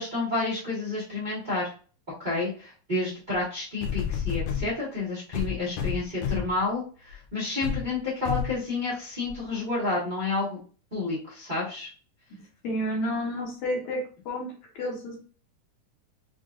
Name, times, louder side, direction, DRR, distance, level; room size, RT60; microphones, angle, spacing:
voice 1, 0.0-1.7 2.2-10.6 10.9-11.9, left 3 dB, 65° right, -9 dB, 0.4 m, -30 dB
sound 1, 3.3-3.4 3.8-4.7 5.3-6.6 7.1-7.2 7.6-7.8 8.2-8.6 9.3-9.4, left 7 dB, 85° left, 1.5 m, -30 dB
voice 2, 12.6-14.5 14.8-15.2, equal, 70° left, -1 dB, 2.2 m, -30 dB
5.9 x 2.5 x 2.4 m, 0.38 s
omnidirectional pair, 3.6 m